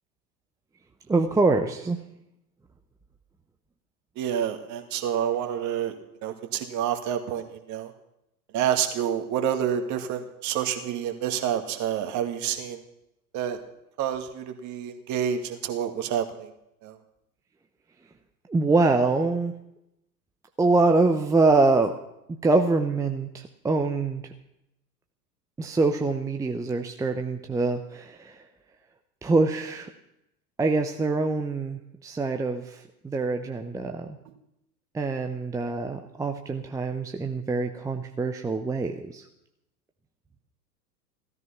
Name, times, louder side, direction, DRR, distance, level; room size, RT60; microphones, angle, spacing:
voice 1, 1.1-2.0 18.5-19.5 20.6-21.9 22.4-24.3 25.6-28.4 29.2-29.9 30.6-34.2 34.9-39.2, right 3 dB, 5° right, 5 dB, 0.8 m, -24 dB
voice 2, 4.2-5.9 6.2-7.9 8.5-12.8 13.3-13.6 14.0-16.5 16.8-17.0, right 9 dB, 35° right, 8 dB, 2.1 m, -28 dB
16.0 x 13.5 x 5.8 m, 0.84 s
figure-of-eight pair, 95°, 50 cm